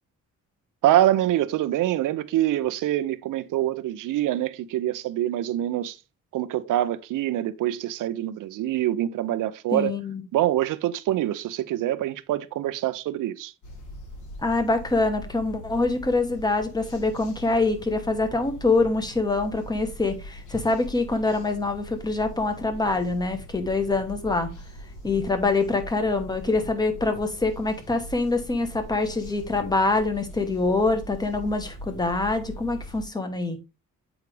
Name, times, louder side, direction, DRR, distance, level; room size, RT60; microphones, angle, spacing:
voice 1, 0.8-6.0 6.3-10.0 10.3-13.5, right 13 dB, 75° right, 0.6 m, -25 dB
voice 2, 9.7-10.2 14.4-24.5 25.0-33.6, left 3 dB, 10° left, 0.9 m, -25 dB
sound 1, 13.6-33.1, left 1 dB, 65° left, 2.3 m, -41 dB
8.1 x 4.8 x 3.3 m
cardioid pair, 170°, 32 cm